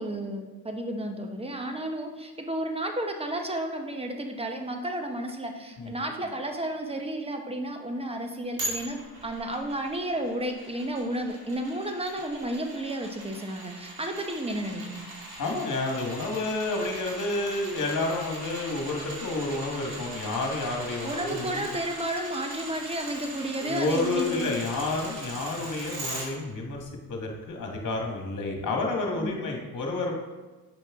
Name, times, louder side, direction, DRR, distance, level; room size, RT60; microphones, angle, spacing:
voice 1, 0.0-15.1 21.0-24.5 29.2-29.4, right 1 dB, 15° right, 4 dB, 1.0 m, -32 dB
sound 1, 8.6-26.3 26.7-26.8, right 2 dB, 60° right, 2.4 m, -40 dB
voice 2, 15.4-21.6 23.6-30.1, left 2 dB, 45° left, 1 dB, 1.8 m, -30 dB
8.0 x 5.4 x 3.7 m, 1.2 s
supercardioid pair, 70°, 41 cm